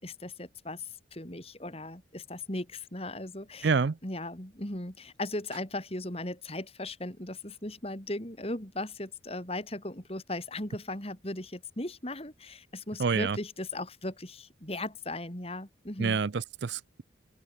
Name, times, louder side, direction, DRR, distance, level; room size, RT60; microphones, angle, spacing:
voice 1, 0.0-3.7 4.0-16.2, left 2 dB, 30° left, 3.5 m, -37 dB
voice 2, 3.6-4.0 13.0-13.4 16.0-17.0, right 5 dB, 65° right, 0.5 m, -27 dB
head